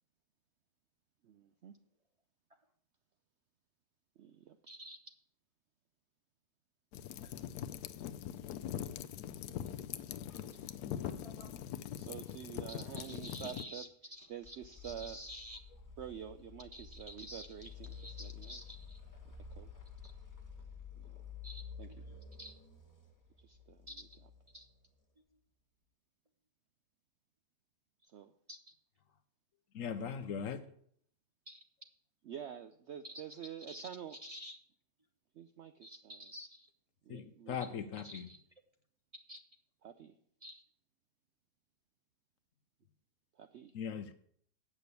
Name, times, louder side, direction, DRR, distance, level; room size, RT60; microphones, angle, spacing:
voice 1, 1.2-1.7 4.2-4.6 11.9-13.8 14.3-15.2 16.0-17.9 18.2-18.6 19.5-19.7 21.0-21.2 21.8-21.9 23.4-23.9 28.0-28.3 32.3-34.2 35.3-36.2 37.0-37.8 39.8-40.2 43.4-43.7, right 9 dB, 70° right, 9 dB, 0.6 m, -48 dB
voice 2, 4.7-5.0 7.2-7.3 10.2-10.7 11.0-11.8 12.9-14.6 14.8-15.6 16.7-19.0 20.0-20.1 21.4-22.5 23.9-24.2 24.5-24.7 25.3-25.4 28.5-28.6 31.5-31.6 33.0-33.2 33.7-34.6 35.8-36.7 37.6-37.7 38.0-38.4 39.3-39.4 40.4-40.6, equal, 30° right, 5 dB, 0.8 m, -51 dB
sound 1, 6.9-13.6, left 10 dB, 85° left, 1.1 m, -42 dB
sound 2, 14.2-25.0, left 6 dB, 10° left, 1.3 m, -51 dB
voice 3, 29.7-30.6 37.1-38.2 43.7-44.1, left 7 dB, 65° left, 11 dB, 0.9 m, -39 dB
8.6 x 6.0 x 8.1 m, 0.65 s
omnidirectional pair, 1.7 m